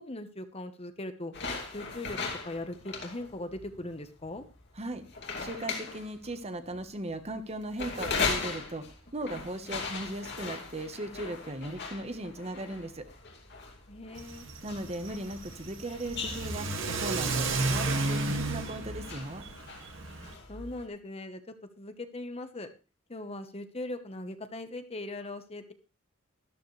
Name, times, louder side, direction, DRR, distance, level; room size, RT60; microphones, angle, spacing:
voice 1, 0.0-1.3 1.7-2.2 2.4-4.5 13.9-14.5 20.2-22.7 23.1-25.7, left 2 dB, 30° left, 9 dB, 1.1 m, -40 dB
sound 1, 1.3-20.9, left 4 dB, 55° left, 2.7 m, -39 dB
voice 2, 5.4-8.8 9.1-13.1 14.6-19.4, right 1 dB, 30° right, 9 dB, 1.2 m, -37 dB
Car / Accelerating revving vroom, 14.2-20.3, right 3 dB, 65° right, 2.1 m, -33 dB
13.0 x 12.5 x 3.3 m, 0.31 s
head